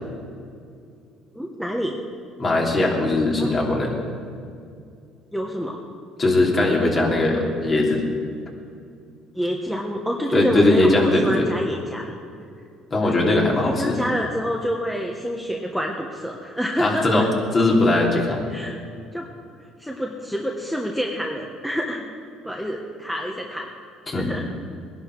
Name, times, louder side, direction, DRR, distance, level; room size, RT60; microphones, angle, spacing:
voice 1, 1.3-2.0 3.4-3.5 5.3-5.8 6.9-7.0 9.3-12.2 13.0-13.2 13.5-17.2 18.5-18.8 19.1-19.2 19.8-22.1 22.4-23.7 24.1-24.4, equal, ahead, 0 dB, 1.4 m, -27 dB
voice 2, 2.4-4.0 6.2-8.0 10.3-11.4 12.9-14.0 16.8-17.3 17.5-18.4 24.1-24.3, left 2 dB, 35° left, -2 dB, 3.3 m, -20 dB
19.5 x 11.0 x 4.7 m, 2.4 s
supercardioid pair, 95°, 0 cm